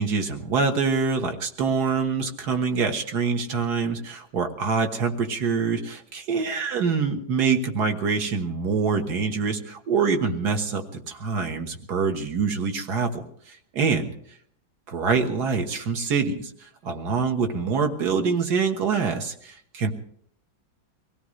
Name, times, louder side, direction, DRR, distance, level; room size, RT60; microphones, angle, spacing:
voice 1, 0.0-14.1 14.9-19.9, right 5 dB, 55° right, 5 dB, 1.9 m, -25 dB
24.5 x 17.0 x 3.2 m, 0.64 s
omnidirectional pair, 2.1 m